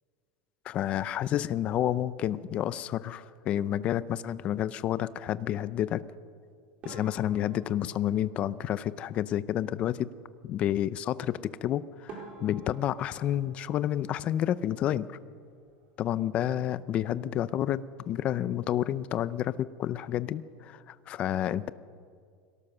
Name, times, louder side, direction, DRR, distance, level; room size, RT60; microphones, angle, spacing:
voice 1, 0.6-6.0 6.8-10.1 10.4-15.1 16.0-21.7, left 11 dB, 30° left, 16 dB, 0.5 m, -30 dB
sound 1, 6.8-9.3 11.5-11.6 12.1-14.8 15.1-15.9 16.2-16.4 16.7-16.8 17.4-17.7, right 3 dB, 35° right, 4.5 m, -50 dB
22.5 x 17.5 x 6.7 m, 2.2 s
supercardioid pair, 165°, 4 cm